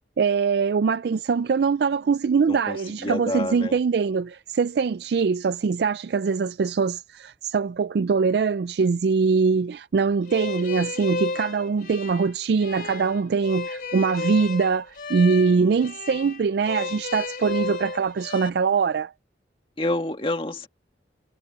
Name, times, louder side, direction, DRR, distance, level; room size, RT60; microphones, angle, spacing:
voice 1, 0.2-19.1, right 5 dB, 65° right, 0.3 m, -23 dB
voice 2, 2.5-3.8 15.5-15.8 19.8-20.7, left 1 dB, 30° left, 1.9 m, -29 dB
sound 1, 10.3-18.5, left 3 dB, 50° left, 3.9 m, -33 dB
head